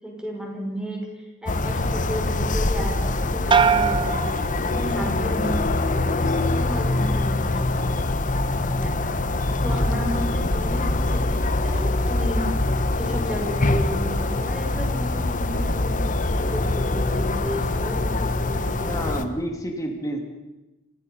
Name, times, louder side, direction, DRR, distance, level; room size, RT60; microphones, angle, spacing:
voice 1, 0.0-7.9 8.5-12.5 13.0-19.2, equal, 5° right, -1 dB, 5.5 m, -33 dB
sound 1, 1.5-19.2, left 2 dB, 35° left, 1.2 m, -24 dB
sound 2, 3.5-5.2 5.6-6.2, right 6 dB, 20° right, 0.6 m, -23 dB
voice 2, 18.8-20.2, equal, 15° left, 2 dB, 2.7 m, -29 dB
30.0 x 16.0 x 5.6 m, 1.0 s
head